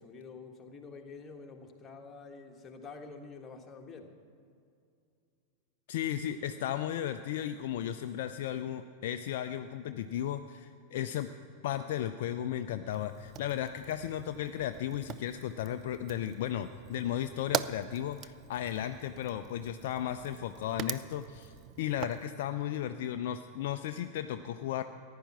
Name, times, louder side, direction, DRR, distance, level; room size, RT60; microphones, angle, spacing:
voice 1, 0.0-4.1, left 4 dB, 20° left, 2 dB, 1.4 m, -48 dB
voice 2, 5.9-11.3 11.6-24.8, left 11 dB, 55° left, 9 dB, 0.4 m, -35 dB
Fire, 12.9-22.3, right 11 dB, 35° right, 0.3 m, -42 dB
14.5 x 10.5 x 5.9 m, 2.4 s
figure-of-eight pair, 90°, 0 cm